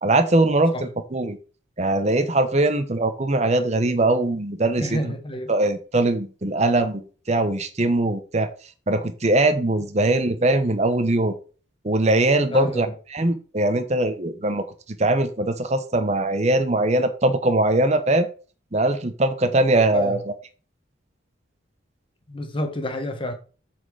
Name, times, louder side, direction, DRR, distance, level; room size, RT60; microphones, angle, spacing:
voice 1, 0.0-1.4 1.8-5.1 5.5-8.5 8.9-11.4 11.8-14.6 15.0-18.3 18.7-20.2, right 2 dB, 35° right, 0.8 m, -21 dB
voice 2, 4.8-5.5 10.0-10.1 12.5-12.9 19.9-20.2 22.3-23.3, left 1 dB, 25° left, 1.2 m, -29 dB
7.9 x 4.4 x 4.9 m
head